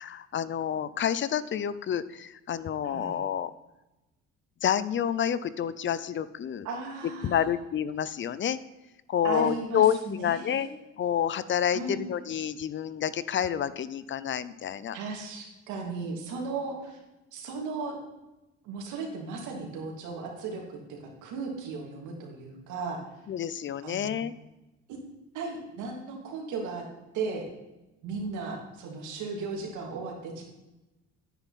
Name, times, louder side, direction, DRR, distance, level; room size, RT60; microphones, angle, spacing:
voice 1, 0.0-3.5 4.6-6.7 7.2-8.6 9.1-10.7 11.0-15.0 23.3-24.3, left 9 dB, 40° left, 16 dB, 0.5 m, -28 dB
voice 2, 2.8-3.2 6.6-7.5 9.2-10.7 11.7-12.0 14.9-17.0 17.3-18.0 18.6-23.0 23.8-24.3 24.9-25.0 25.3-26.8 27.1-27.4 28.0-30.4, right 4 dB, 80° right, 1 dB, 2.8 m, -36 dB
9.9 x 9.5 x 4.2 m, 0.99 s
cardioid pair, 100°, 30 cm